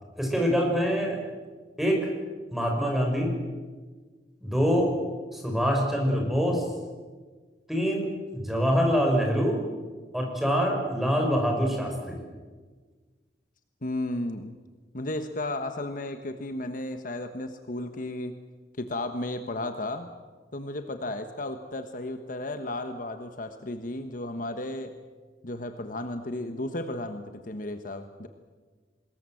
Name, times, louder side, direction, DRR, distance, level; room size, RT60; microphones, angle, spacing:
voice 1, 0.2-1.2 1.8-2.1 2.5-3.3 4.4-4.9 5.3-6.6 7.7-9.6 10.1-12.2, equal, ahead, 1 dB, 6.0 m, -25 dB
voice 2, 13.8-14.6 14.9-18.4 18.8-20.1 20.5-24.9 25.4-28.3, left 1 dB, 50° left, 8 dB, 1.3 m, -34 dB
25.0 x 21.0 x 7.8 m, 1.4 s
head